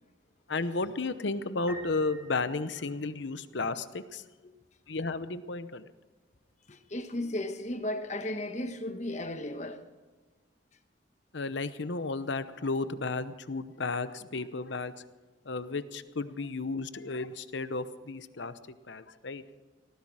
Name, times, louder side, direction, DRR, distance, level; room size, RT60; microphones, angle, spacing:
voice 1, 0.5-4.2 4.9-5.9 11.3-14.9 15.5-18.5 18.9-19.4, left 3 dB, 70° left, 0.8 m, -33 dB
Piano, 1.7-3.5, right 1 dB, 10° right, 3.1 m, -48 dB
voice 2, 6.7-9.8, left 1 dB, 40° left, 1.2 m, -35 dB
18.5 x 15.0 x 4.9 m
head